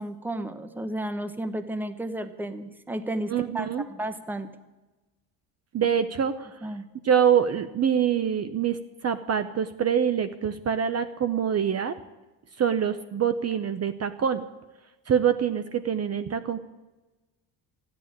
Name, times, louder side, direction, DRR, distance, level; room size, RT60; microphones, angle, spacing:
voice 1, 0.0-4.5 6.6-6.8, right 1 dB, 5° right, 11 dB, 0.9 m, -33 dB
voice 2, 3.3-3.8 5.7-6.5 7.0-12.0 12.6-14.4 15.1-16.6, right 8 dB, 35° right, 11 dB, 0.7 m, -25 dB
13.5 x 10.5 x 8.8 m, 1.1 s
cardioid pair, 120°, 43 cm